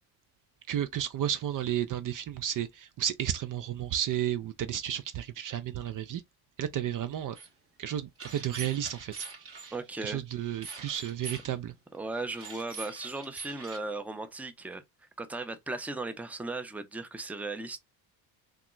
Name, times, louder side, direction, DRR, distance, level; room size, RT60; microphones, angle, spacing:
voice 1, 0.7-6.2 6.6-7.4 7.8-9.7 10.0-11.7, right 11 dB, 45° right, 0.5 m, -32 dB
sound 1, 7.3-7.5 8.2-9.7 10.6-11.5 12.3-13.8, right 4 dB, 30° right, 2.1 m, -43 dB
voice 2, 9.7-10.2 11.9-14.8 15.2-17.8, right 2 dB, 5° right, 0.6 m, -37 dB
3.6 x 2.3 x 3.0 m
supercardioid pair, 75°, 44 cm